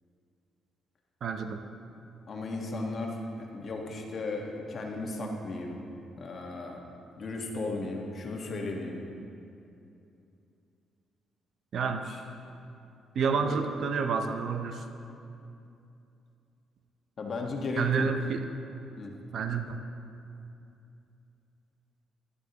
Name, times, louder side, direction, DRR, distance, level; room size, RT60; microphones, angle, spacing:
voice 1, 1.2-1.6 11.7-12.1 13.2-14.8 17.8-18.4 19.3-19.8, right 5 dB, 60° right, 7 dB, 0.6 m, -29 dB
voice 2, 2.3-5.8 6.2-6.8 7.2-9.1 12.0-12.2 13.3-13.6 17.2-18.1 19.0-19.2, left 2 dB, 50° left, 1 dB, 1.3 m, -35 dB
11.0 x 10.5 x 2.9 m, 2.7 s
cardioid pair, 90°, 0 cm